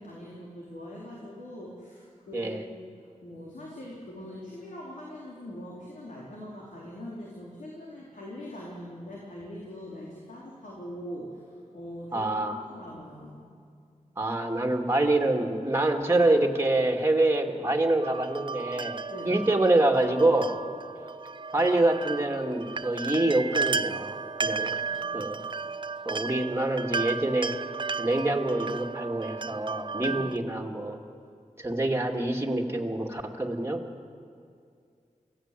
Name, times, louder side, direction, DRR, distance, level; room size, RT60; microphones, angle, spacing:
voice 1, 0.0-2.9 3.2-13.5 13.9-14.0 19.1-19.4 24.7-25.3 30.0-30.2, left 1 dB, 75° left, -5 dB, 4.0 m, -42 dB
voice 2, 2.3-2.6 12.1-12.6 14.2-20.5 21.5-24.7 25.1-25.4 26.1-27.5 28.0-31.0 31.6-33.8, right 2 dB, 20° right, 2 dB, 2.5 m, -26 dB
sound 1, 18.0-30.4, right 4 dB, 35° right, 0.5 m, -34 dB
24.5 x 16.5 x 7.8 m, 2.3 s
cardioid pair, 55°, 14 cm